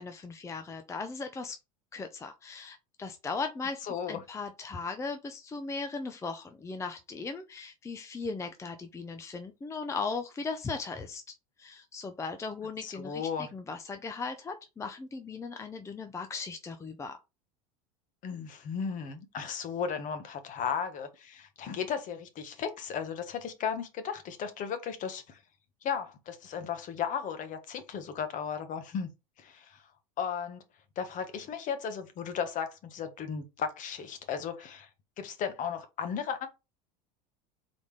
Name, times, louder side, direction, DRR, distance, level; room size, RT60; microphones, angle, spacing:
voice 1, 0.0-1.6 1.9-3.8 4.1-11.2 11.6-17.2, left 4 dB, 15° left, 0.5 m, -38 dB
voice 2, 3.9-4.2 12.8-13.5 18.2-25.4 25.8-29.1 29.4-29.8 30.2-30.6 31.0-34.9 35.2-36.5, left 7 dB, 45° left, 1.1 m, -35 dB
4.0 x 3.6 x 3.3 m
supercardioid pair, 105°, 19 cm